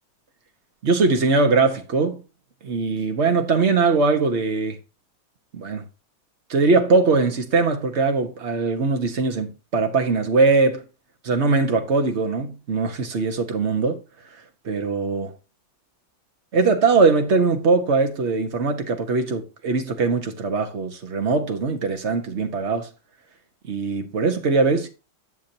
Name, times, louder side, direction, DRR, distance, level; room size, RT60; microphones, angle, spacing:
voice 1, 0.8-2.2 2.6-4.8 5.5-5.9 6.5-10.8 11.2-14.0 14.6-15.3 16.5-22.9 23.7-24.9, right 4 dB, 40° right, 1.3 m, -21 dB
9.8 x 6.9 x 2.8 m
omnidirectional pair, 2.0 m